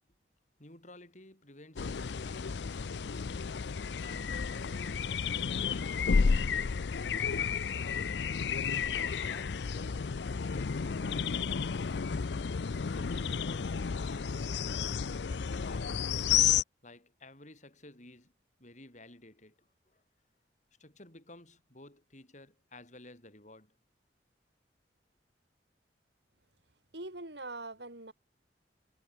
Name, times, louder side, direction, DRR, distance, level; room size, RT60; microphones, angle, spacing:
voice 1, 0.6-2.9 4.0-6.7 7.0-8.1 9.0-11.7 12.9-14.5 15.0-16.1 16.8-18.3 18.6-20.0 20.8-23.7, left 2 dB, 40° left, 6.6 m, -54 dB
sound 1, 1.8-16.6, left 6 dB, 75° left, 0.5 m, -32 dB
voice 2, 26.9-28.1, right 2 dB, 70° right, 4.8 m, -42 dB
head